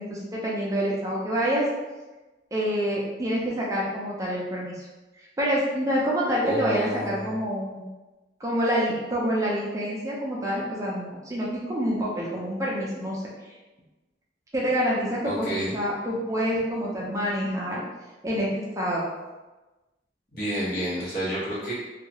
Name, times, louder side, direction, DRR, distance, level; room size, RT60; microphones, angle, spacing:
voice 1, 0.0-1.6 2.5-4.9 5.4-7.8 8.4-13.2 14.5-15.5 15.7-17.8 18.2-19.0, equal, 20° right, -5 dB, 0.5 m, -27 dB
voice 2, 6.4-7.4 15.2-15.8 20.3-21.7, right 1 dB, 55° left, -9 dB, 1.3 m, -29 dB
2.7 x 2.3 x 2.8 m, 1.1 s
head